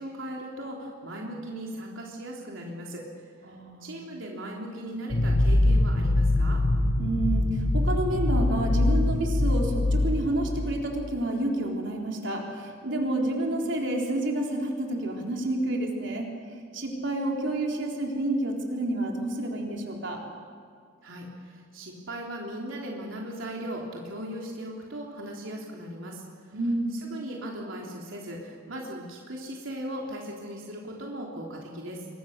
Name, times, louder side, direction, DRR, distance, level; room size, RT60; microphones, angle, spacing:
voice 1, 0.0-3.3 3.8-6.6 21.0-26.2 26.9-32.1, right 1 dB, 90° right, -1 dB, 3.4 m, -38 dB
voice 2, 3.5-4.0 7.0-16.3 16.7-20.2 26.5-27.0, right 1 dB, 65° right, 0 dB, 4.1 m, -29 dB
sound 1, 5.1-11.1, left 2 dB, 55° left, 1.7 m, -23 dB
27.5 x 23.5 x 6.7 m, 2.1 s
head